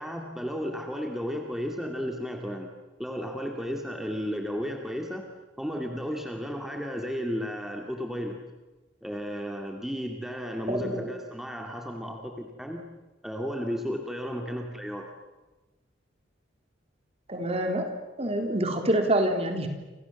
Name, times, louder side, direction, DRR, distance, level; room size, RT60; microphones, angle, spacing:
voice 1, 0.0-2.7 3.0-5.3 5.6-8.4 9.0-12.9 13.2-15.1, equal, ahead, 2 dB, 2.4 m, -33 dB
voice 2, 17.3-17.9 18.2-19.7, right 1 dB, 35° right, 4 dB, 3.8 m, -26 dB
30.0 x 26.5 x 7.2 m, 1.1 s
head